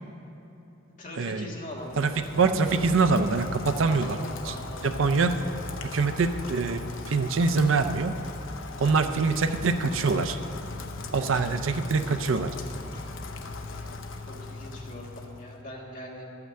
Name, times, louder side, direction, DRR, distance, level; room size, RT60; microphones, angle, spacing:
voice 1, 1.0-2.3 3.8-4.9 11.3-11.4 14.3-16.2, left 1 dB, 40° left, -3 dB, 1.7 m, -41 dB
Rain, 1.8-15.6, left 3 dB, 65° left, 0.6 m, -39 dB
voice 2, 2.0-4.2 4.4-4.5 4.8-5.4 5.8-6.8 7.1-8.1 8.8-10.4 11.1-12.6, right 4 dB, 70° right, 9 dB, 0.5 m, -24 dB
12.5 x 5.9 x 7.6 m, 3.0 s
head